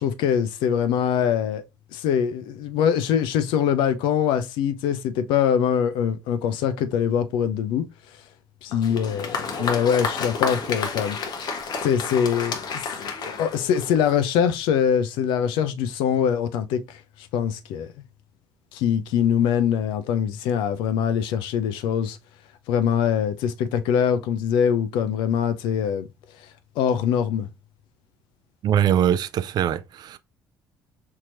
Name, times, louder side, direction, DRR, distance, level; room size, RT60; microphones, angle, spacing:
voice 1, 0.0-1.6 1.9-7.9 8.6-11.2 11.8-17.9 18.7-22.2 22.7-26.1 26.8-27.5, left 8 dB, 70° left, 0.5 m, -23 dB
Applause, 8.7-14.3, left 5 dB, 55° left, 0.9 m, -30 dB
voice 2, 28.6-30.2, right 10 dB, 55° right, 0.4 m, -22 dB
4.6 x 2.9 x 2.4 m
hypercardioid pair, 55°, 9 cm